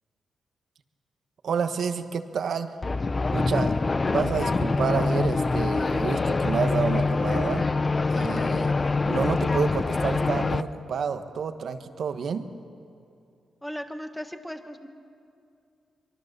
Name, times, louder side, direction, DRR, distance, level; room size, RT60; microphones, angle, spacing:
voice 1, 1.4-2.8 3.3-3.7 4.1-7.7 8.1-8.7 9.1-12.5, right 6 dB, 65° right, 8 dB, 1.2 m, -29 dB
sound 1, 2.8-10.6, left 3 dB, 25° left, 0.6 m, -25 dB
voice 2, 13.6-14.9, equal, 5° left, 7 dB, 1.4 m, -37 dB
24.5 x 24.0 x 6.7 m, 2.5 s
wide cardioid pair, 130°, 0 cm